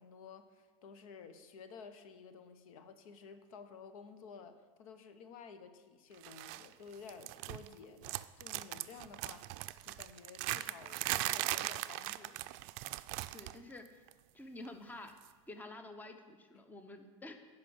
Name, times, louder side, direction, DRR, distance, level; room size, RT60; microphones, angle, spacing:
voice 1, 0.0-12.4, left 5 dB, 80° left, 9 dB, 0.9 m, -53 dB
sound 1, 6.2-6.7 6.9-7.7 8.0-13.6 13.9-14.1 15.2-15.3, right 17 dB, 55° right, 0.4 m, -39 dB
voice 2, 13.3-13.9 14.3-15.1 15.5-17.4, left 2 dB, 10° left, 7 dB, 0.8 m, -49 dB
10.5 x 5.2 x 7.1 m, 1.4 s
supercardioid pair, 115°, 18 cm